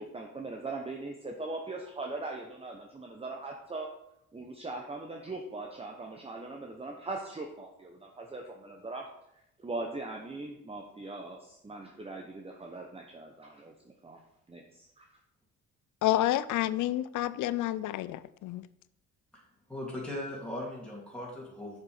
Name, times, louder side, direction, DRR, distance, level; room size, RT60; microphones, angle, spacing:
voice 1, 0.0-3.9 4.3-9.1 9.6-13.5 14.5-15.1, right 2 dB, 20° right, 1 dB, 1.0 m, -40 dB
voice 2, 16.0-18.6, left 14 dB, 80° left, 16 dB, 0.5 m, -29 dB
voice 3, 19.7-21.8, left 1 dB, 5° left, -5 dB, 2.9 m, -38 dB
7.0 x 5.4 x 5.1 m, 0.76 s
cardioid pair, 90°, 30 cm